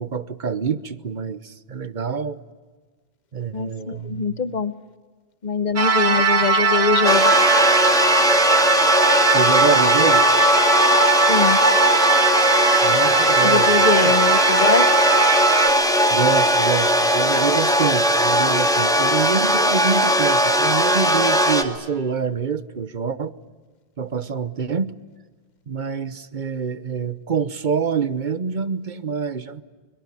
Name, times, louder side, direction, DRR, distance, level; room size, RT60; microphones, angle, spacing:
voice 1, 0.0-2.4 3.3-4.4 6.2-6.3 9.3-10.3 12.8-13.7 14.0-14.1 16.1-23.4 24.0-24.9 25.7-29.6, right 6 dB, 50° right, 15 dB, 1.1 m, -26 dB
voice 2, 3.5-4.7 5.4-7.3 11.3-11.6 13.4-14.9, left 5 dB, 45° left, 14 dB, 1.1 m, -23 dB
sound 1, 5.8-15.7, right 4 dB, 75° right, 1.5 m, -19 dB
sound 2, 7.0-21.6, equal, 5° left, 2.0 m, -18 dB
23.0 x 23.0 x 9.8 m, 1.4 s
omnidirectional pair, 1.1 m